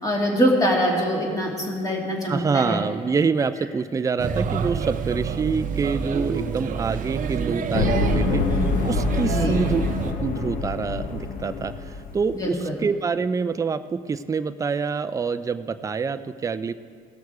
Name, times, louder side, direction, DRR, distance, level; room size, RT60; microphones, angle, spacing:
voice 1, 0.0-2.8 9.2-9.5 12.4-12.7, equal, 20° left, -2 dB, 2.4 m, -23 dB
voice 2, 2.3-9.8 10.2-16.7, right 5 dB, 20° right, 11 dB, 0.4 m, -26 dB
Male speech man speaking / Child speech kid speaking / Chatter, 4.2-10.1, right 6 dB, 50° right, 0.8 m, -27 dB
sound 1, 7.7-12.5, left 4 dB, 55° left, 0.9 m, -26 dB
17.5 x 6.3 x 4.7 m, 2.1 s
cardioid pair, 110°, 17 cm